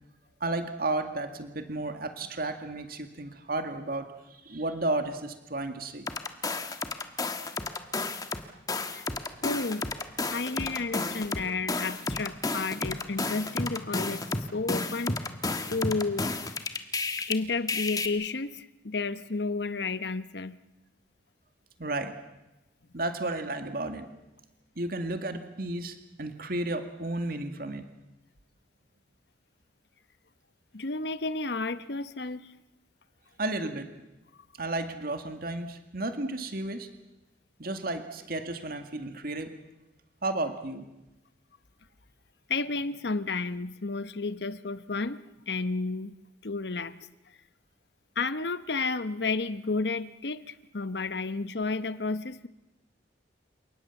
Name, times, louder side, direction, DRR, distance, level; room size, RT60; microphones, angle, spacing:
voice 1, 0.4-6.1 10.2-10.3 21.8-22.1 22.9-24.1 24.8-27.9 33.4-33.9 34.6-36.9 37.6-39.5 40.2-40.9, right 2 dB, 55° right, 7 dB, 2.0 m, -33 dB
sound 1, 6.1-8.4 8.7-17.3 17.7-18.1, left 3 dB, 20° left, 1.5 m, -31 dB
voice 2, 9.4-9.8 10.3-14.3 14.5-15.2 15.7-16.3 17.3-20.5 30.7-32.5 42.5-46.2 46.4-47.0 48.2-50.4 50.7-52.5, left 3 dB, 65° left, 13 dB, 1.0 m, -31 dB
29.5 x 18.5 x 7.2 m, 0.97 s
head